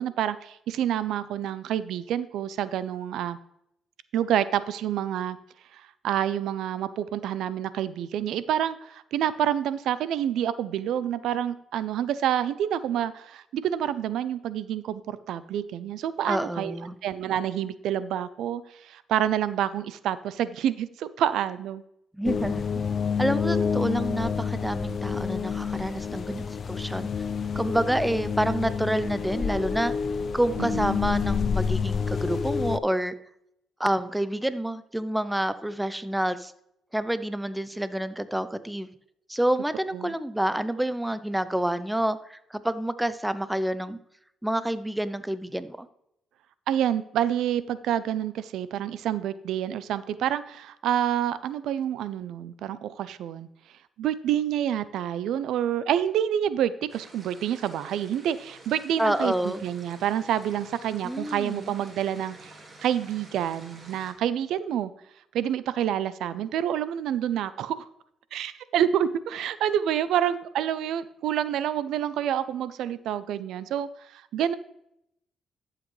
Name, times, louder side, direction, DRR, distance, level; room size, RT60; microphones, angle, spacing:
voice 1, 0.0-3.4 4.1-5.4 5.7-16.8 17.0-21.8 30.6-31.0 39.9-40.1 46.7-53.5 54.0-62.5 62.8-64.9 65.3-67.8 68.3-74.6, right 10 dB, 80° right, 15 dB, 0.4 m, -28 dB
voice 2, 16.3-17.0 22.1-22.8 23.2-27.1 27.5-29.9 30.3-33.1 33.8-36.5 36.9-38.9 39.3-44.0 44.4-45.9 59.0-59.7 61.0-61.7, right 1 dB, 5° right, 14 dB, 0.6 m, -28 dB
sound 1, 22.2-32.8, left 6 dB, 50° left, 0.3 m, -28 dB
sound 2, 56.9-64.1, right 2 dB, 35° right, 2.0 m, -49 dB
11.5 x 7.5 x 3.2 m, 0.78 s
cardioid pair, 90°, 0 cm